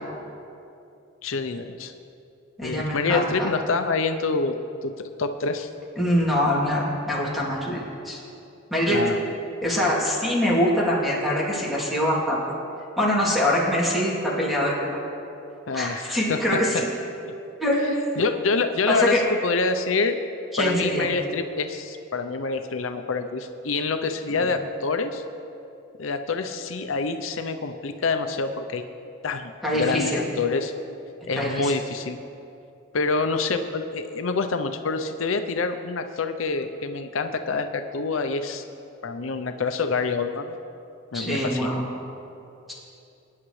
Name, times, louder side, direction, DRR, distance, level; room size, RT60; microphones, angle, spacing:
voice 1, 1.2-1.9 2.6-5.7 8.9-9.4 15.7-16.8 18.2-20.2 20.6-25.2 26.0-28.8 29.2-30.7 31.3-32.2 32.9-38.6 39.0-40.6 41.1-41.7, left 4 dB, 90° left, 8 dB, 0.6 m, -26 dB
voice 2, 2.6-3.5 6.0-8.2 8.7-9.0 9.6-12.4 13.0-14.7 15.7-16.9 17.6-17.9 18.9-19.2 20.5-21.1 24.3-24.5 29.6-30.2 31.4-31.7 41.1-41.8, equal, ahead, -6 dB, 2.8 m, -24 dB
22.5 x 9.7 x 3.2 m, 2.7 s
head